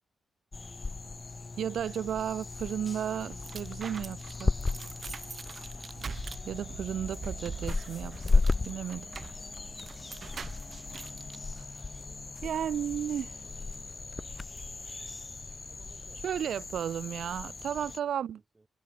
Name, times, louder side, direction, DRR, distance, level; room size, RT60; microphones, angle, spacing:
sound 1, 0.5-18.0, left 3 dB, 35° left, 0.8 m, -35 dB
voice 1, 1.6-4.5 6.5-9.1 11.6-11.7 12.4-13.3 16.2-18.4, right 9 dB, 80° right, 0.5 m, -34 dB
sound 2, 2.8-11.4, right 5 dB, 55° right, 3.2 m, -44 dB
voice 2, 12.0-13.6 15.7-18.7, right 2 dB, 30° right, 7.6 m, -65 dB
cardioid pair, 55°, 0 cm